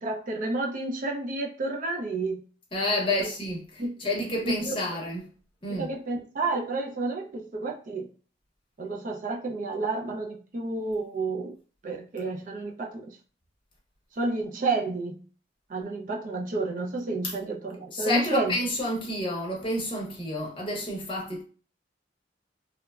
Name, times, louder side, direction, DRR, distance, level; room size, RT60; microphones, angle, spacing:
voice 1, 0.0-2.4 3.2-3.3 3.8-4.0 4.4-4.8 5.7-8.1 8.8-11.5 11.8-13.2 14.1-15.3 15.7-18.6, right 3 dB, 45° right, 0.4 m, -30 dB
voice 2, 2.7-5.3 5.6-5.9 17.2-17.3 17.9-21.4, left 1 dB, 30° left, 0.7 m, -29 dB
3.0 x 2.1 x 2.3 m
head